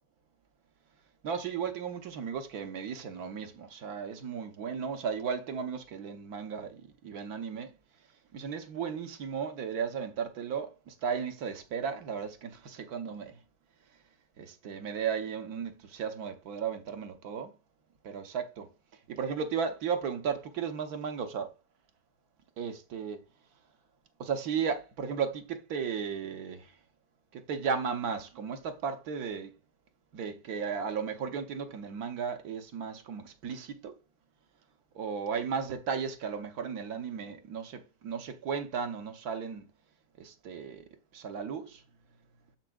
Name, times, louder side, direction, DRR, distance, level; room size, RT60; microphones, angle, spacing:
voice 1, 1.2-7.7 8.3-13.4 14.4-17.5 18.0-18.7 19.1-21.5 22.6-23.2 24.2-26.7 27.3-29.5 30.1-34.0 34.9-39.7 40.2-40.8 41.1-41.8, right 6 dB, 65° right, 1.4 m, -35 dB
8.7 x 7.1 x 2.3 m
omnidirectional pair, 1.8 m